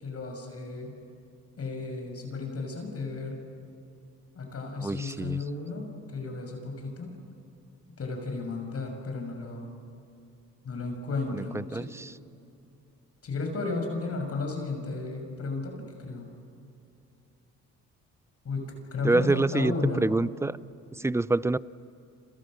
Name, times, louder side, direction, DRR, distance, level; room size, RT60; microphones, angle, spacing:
voice 1, 0.0-0.9 1.6-3.4 4.3-7.1 8.0-9.7 10.6-11.9 13.2-16.3 18.4-20.1, left 3 dB, 50° left, 3 dB, 6.7 m, -34 dB
voice 2, 4.8-5.4 11.3-12.1 19.0-20.6 20.9-21.6, right 2 dB, 10° right, 18 dB, 0.5 m, -27 dB
30.0 x 27.0 x 6.6 m, 2.6 s
cardioid pair, 90°, 30 cm